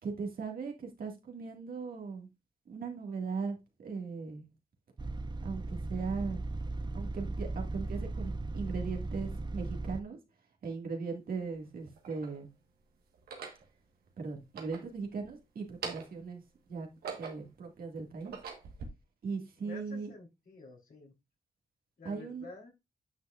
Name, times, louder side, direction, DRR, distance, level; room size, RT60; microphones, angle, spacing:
voice 1, 0.0-2.3 2.7-4.4 5.4-6.4 6.9-10.2 10.6-12.5 14.2-16.4 16.7-16.9 17.2-18.4 19.2-20.1 22.0-22.5, right 4 dB, 75° right, 2.0 m, -38 dB
sound 1, 5.0-10.0, right 2 dB, 30° right, 0.7 m, -37 dB
sound 2, 10.6-10.7 11.6-12.4 13.1-13.6 14.4-15.3 15.6-16.3 16.7-17.6 18.1-18.9, right 5 dB, 90° right, 1.4 m, -43 dB
voice 2, 19.6-21.1 22.0-22.7, left 3 dB, 70° left, 3.5 m, -50 dB
9.6 x 5.6 x 2.5 m
supercardioid pair, 50°, 15 cm